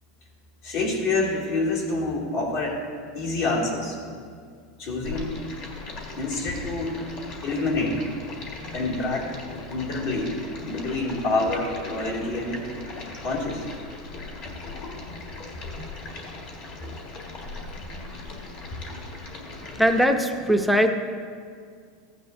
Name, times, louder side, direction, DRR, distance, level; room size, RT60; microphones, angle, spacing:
voice 1, 0.6-2.9 3.1-4.0 4.8-5.3 6.2-7.0 7.4-8.0 8.7-9.3 9.7-10.3 10.7-12.6 13.2-13.6, left 2 dB, 60° left, -3 dB, 2.6 m, -27 dB
Stream, 5.0-20.0, left 2 dB, 45° left, 1.8 m, -39 dB
voice 2, 19.6-20.9, equal, ahead, 4 dB, 0.5 m, -21 dB
15.5 x 9.4 x 2.7 m, 2.1 s
supercardioid pair, 150°, 3 cm